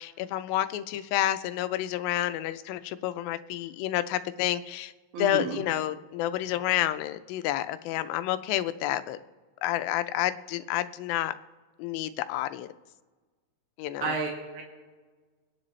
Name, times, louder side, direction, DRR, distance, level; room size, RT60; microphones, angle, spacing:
voice 1, 0.0-4.9 5.2-9.2 9.6-11.4 11.8-12.7 13.8-14.2, left 13 dB, 85° left, 12 dB, 2.4 m, -29 dB
voice 2, 5.1-5.6 14.0-14.6, right 4 dB, 85° right, 0 dB, 3.7 m, -31 dB
27.0 x 10.5 x 3.2 m, 1.4 s
omnidirectional pair, 4.1 m